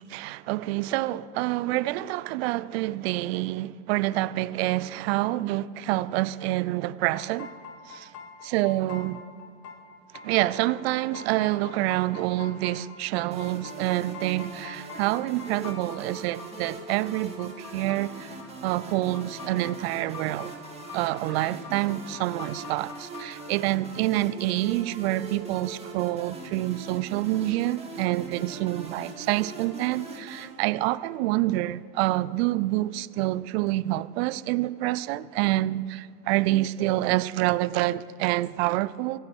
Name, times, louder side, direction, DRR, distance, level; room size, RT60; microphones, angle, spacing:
voice 1, 0.1-7.5 7.9-8.1 8.4-9.2 10.2-18.3 18.6-20.5 20.9-39.2, right 17 dB, 40° right, 0.5 m, -27 dB
sound 1, 7.1-23.5, left 5 dB, 75° left, 2.0 m, -45 dB
sound 2, 13.3-30.4, right 3 dB, 10° right, 2.5 m, -42 dB
26.5 x 9.4 x 4.5 m
hypercardioid pair, 110°, 48 cm